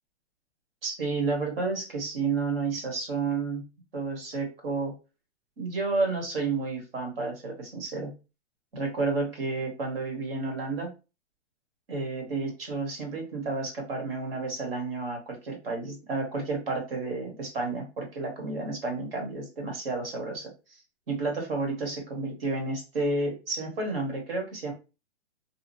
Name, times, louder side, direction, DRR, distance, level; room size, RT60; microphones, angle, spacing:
voice 1, 0.8-3.7 3.9-4.9 5.6-8.1 8.7-10.9 11.9-20.8 21.1-24.7, right 3 dB, 50° right, 1 dB, 1.3 m, -31 dB
2.9 x 2.3 x 2.6 m, 0.30 s
hypercardioid pair, 175°, 37 cm